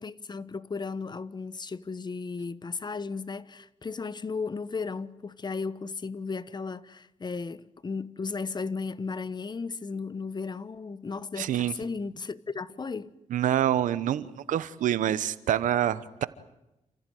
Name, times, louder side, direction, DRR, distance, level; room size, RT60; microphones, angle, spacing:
voice 1, 0.0-13.1, left 4 dB, 35° left, 1.1 m, -35 dB
voice 2, 11.4-11.7 13.3-16.3, right 11 dB, 85° right, 1.0 m, -26 dB
29.0 x 15.0 x 9.3 m
cardioid pair, 80°, 13 cm